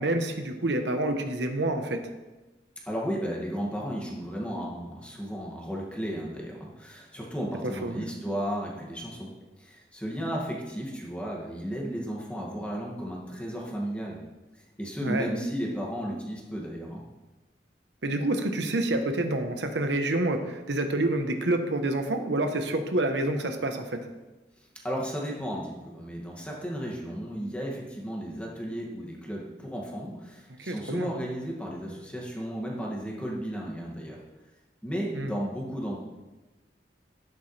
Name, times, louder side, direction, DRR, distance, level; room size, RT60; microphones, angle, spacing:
voice 1, 0.0-2.0 7.6-8.0 15.0-15.3 18.0-24.0 30.6-31.1 35.1-35.3, right 1 dB, 85° right, 6 dB, 1.0 m, -28 dB
voice 2, 2.9-9.3 9.6-14.2 14.8-17.0 24.8-34.2 34.8-36.0, equal, 5° left, -3 dB, 2.1 m, -34 dB
12.5 x 10.0 x 3.3 m, 1.1 s
head